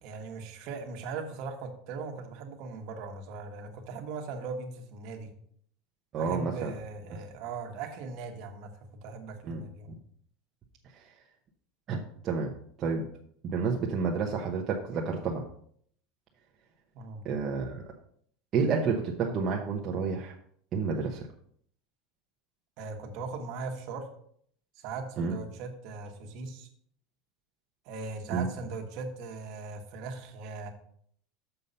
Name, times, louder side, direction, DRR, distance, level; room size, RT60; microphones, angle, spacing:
voice 1, 0.0-5.3 6.1-8.7 9.0-9.9 16.9-17.3 22.8-24.1 24.8-26.7 27.8-30.7, right 4 dB, 50° right, 4 dB, 1.3 m, -39 dB
voice 2, 6.1-6.7 9.4-9.6 11.9-12.5 12.8-13.0 13.4-15.4 17.2-17.9 18.5-20.3 20.7-21.3 25.2-25.3 28.3-28.5, right 5 dB, 30° right, -1 dB, 0.8 m, -30 dB
6.8 x 5.5 x 5.4 m, 0.63 s
supercardioid pair, 170°, 0 cm